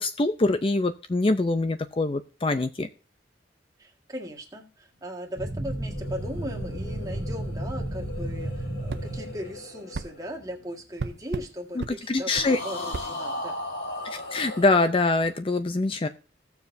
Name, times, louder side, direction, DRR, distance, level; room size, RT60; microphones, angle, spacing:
voice 1, 0.0-2.9 11.8-12.6 14.0-16.1, left 2 dB, 30° left, 10 dB, 0.5 m, -24 dB
voice 2, 3.8-13.5, equal, 20° right, 0 dB, 1.7 m, -38 dB
sound 1, 5.4-9.6, right 1 dB, 35° right, 1.4 m, -33 dB
sound 2, 5.6-11.2 12.3-14.6, left 2 dB, 70° left, 3.2 m, -38 dB
sound 3, 8.9-9.1 9.9-10.1 11.0-11.5 11.8-12.0 12.4-12.5 12.9-13.1, right 4 dB, 65° right, 0.5 m, -33 dB
16.0 x 7.1 x 2.6 m, 0.35 s
head